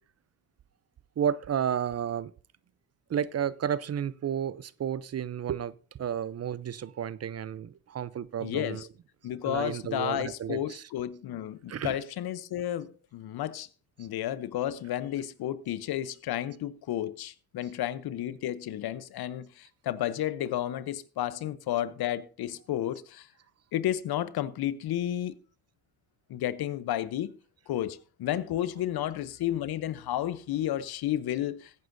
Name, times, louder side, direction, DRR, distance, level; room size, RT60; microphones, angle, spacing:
voice 1, 1.2-2.3 3.1-8.9 9.4-10.9 11.7-12.0, right 9 dB, 40° right, 0.5 m, -32 dB
voice 2, 8.4-8.9 9.2-13.7 14.0-23.3 23.7-25.3 26.3-27.3 27.7-31.7, left 12 dB, 65° left, 0.8 m, -32 dB
16.5 x 9.3 x 2.6 m
supercardioid pair, 60°, 41 cm